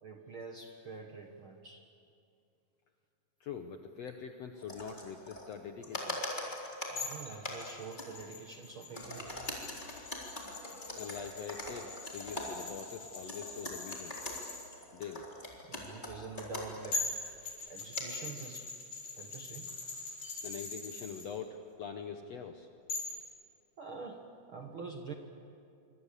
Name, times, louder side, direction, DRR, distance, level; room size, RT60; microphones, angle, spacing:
voice 1, 0.0-1.9 6.9-9.3 15.7-17.0 17.7-18.7 19.1-19.7 23.8-25.1, right 4 dB, 55° right, 3 dB, 1.6 m, -46 dB
voice 2, 3.4-6.3 10.9-14.3 14.9-15.3 20.4-22.7, left 6 dB, 65° left, 5 dB, 1.7 m, -44 dB
sound 1, 4.1-4.2 4.5-5.5 5.8-8.3 8.7-17.1 18.0-18.2 19.5-20.5, left 1 dB, 10° left, 3.8 m, -43 dB
sound 2, 7.0-14.7 16.5-16.6 16.9-21.3 22.9-23.2, left 3 dB, 45° left, 6.6 m, -42 dB
26.5 x 25.5 x 8.4 m, 2.5 s
omnidirectional pair, 4.2 m